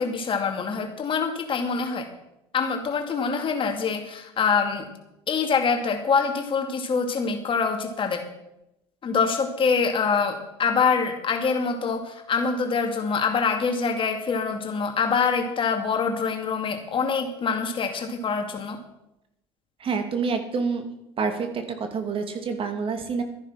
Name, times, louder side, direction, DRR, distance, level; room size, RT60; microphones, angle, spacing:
voice 1, 0.0-2.1 2.5-4.9 5.3-8.3 9.0-18.8, left 5 dB, 40° left, 5 dB, 2.5 m, -25 dB
voice 2, 19.8-20.9 21.2-23.2, right 5 dB, 40° right, 6 dB, 2.3 m, -27 dB
13.0 x 10.5 x 5.9 m, 0.86 s
hypercardioid pair, 80°, 14 cm